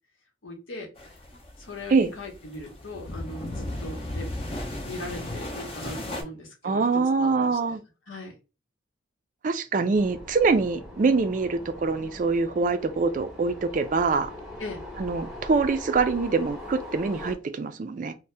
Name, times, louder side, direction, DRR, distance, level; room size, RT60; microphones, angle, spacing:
voice 1, 0.4-0.9 1.6-4.3 4.8-7.8 8.1-8.3 14.6-14.8, left 2 dB, 85° left, 0.9 m, -39 dB
sound 1, 1.0-6.2, left 1 dB, 30° left, 0.5 m, -36 dB
voice 2, 6.6-7.8 9.4-14.3 15.0-18.1, right 4 dB, 40° right, 0.3 m, -24 dB
sound 2, 9.9-17.3, left 1 dB, 5° right, 0.7 m, -41 dB
2.7 x 2.1 x 3.2 m
head